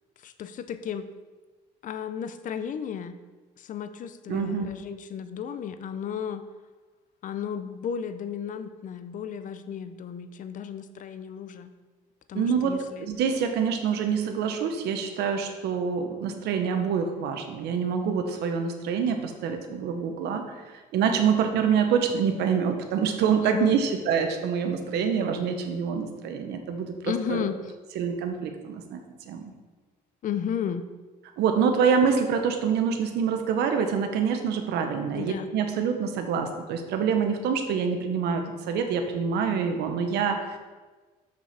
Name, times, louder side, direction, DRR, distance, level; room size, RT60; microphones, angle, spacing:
voice 1, 0.2-1.1 1.8-3.2 3.6-6.4 7.2-11.7 12.3-13.1 23.4-23.8 27.0-27.6 30.2-30.8 35.1-35.5, left 8 dB, 50° left, 11 dB, 0.6 m, -33 dB
voice 2, 4.3-4.7 12.3-20.6 20.9-27.5 27.9-29.5 31.4-40.6, right 6 dB, 80° right, 6 dB, 1.0 m, -26 dB
6.9 x 6.0 x 4.2 m, 1.3 s
cardioid pair, 110°, 17 cm